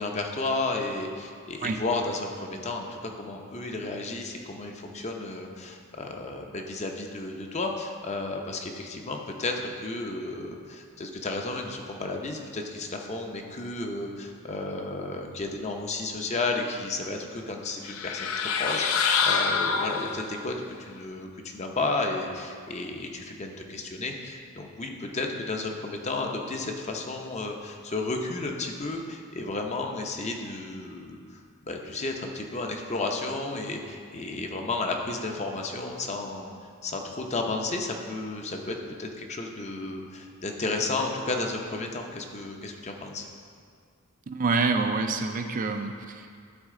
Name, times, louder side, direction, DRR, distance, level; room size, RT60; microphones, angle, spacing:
voice 1, 0.0-31.2 31.7-36.5 36.8-43.3, left 2 dB, 30° left, 2 dB, 0.7 m, -33 dB
sound 1, 17.8-20.5, left 5 dB, 85° left, 0.5 m, -26 dB
voice 2, 44.3-46.4, right 4 dB, 40° right, 6 dB, 0.4 m, -27 dB
12.5 x 4.2 x 3.7 m, 2.1 s
head